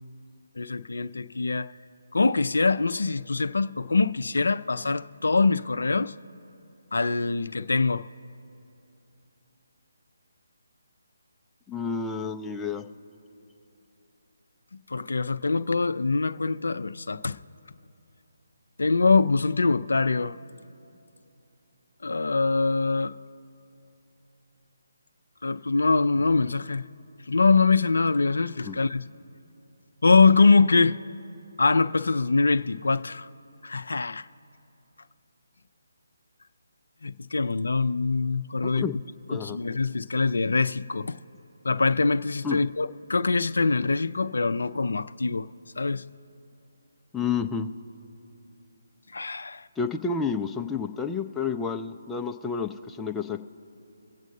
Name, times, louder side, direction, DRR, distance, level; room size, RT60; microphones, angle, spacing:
voice 1, 0.6-1.7 2.1-6.1 6.9-8.0 14.9-17.4 18.8-20.4 22.0-23.2 25.4-26.8 27.3-29.0 30.0-31.0 31.6-33.3 33.6-34.3 37.0-38.9 39.3-41.2 41.6-45.5 45.8-46.1 49.1-49.7, left 3 dB, 65° left, 0.4 m, -23 dB
voice 2, 11.7-12.8 28.6-28.8 38.6-39.0 39.3-39.6 42.4-42.6 47.1-47.7 49.8-53.5, left 5 dB, 5° left, 0.5 m, -30 dB
23.5 x 8.1 x 2.6 m
figure-of-eight pair, 145°, 0 cm